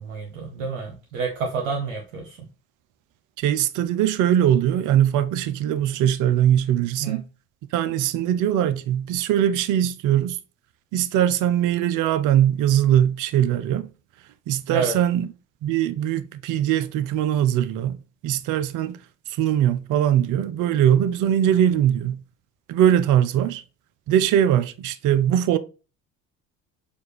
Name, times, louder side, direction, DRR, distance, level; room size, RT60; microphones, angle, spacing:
voice 1, 0.0-2.5 7.0-7.2 14.7-15.0, right 4 dB, 80° right, 0.9 m, -29 dB
voice 2, 3.4-7.2 7.7-10.4 10.9-13.9 14.5-15.3 15.6-18.0 18.2-19.0 19.3-22.2 22.7-23.6 24.1-25.6, right 10 dB, 50° right, 0.5 m, -21 dB
4.9 x 2.4 x 3.0 m
hypercardioid pair, 60°, 40 cm